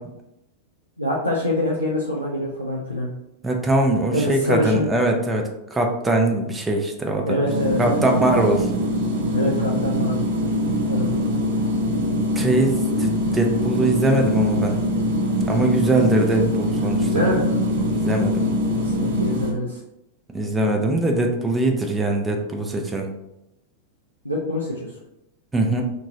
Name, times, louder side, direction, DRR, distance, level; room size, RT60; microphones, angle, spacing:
voice 1, 1.0-3.1 4.1-4.9 7.3-8.2 9.3-10.2 10.9-11.3 16.9-17.6 18.8-19.8 24.2-24.9, left 1 dB, 90° left, -5 dB, 0.4 m, -25 dB
voice 2, 3.4-7.4 7.8-8.7 12.4-14.7 15.5-17.1 17.9-18.5 20.3-23.1 25.5-25.8, right 2 dB, 15° right, 2 dB, 0.5 m, -21 dB
sound 1, 7.5-19.5, equal, 60° right, 0.6 m, -23 dB
2.9 x 2.6 x 2.6 m, 0.88 s
figure-of-eight pair, 90°, 0 cm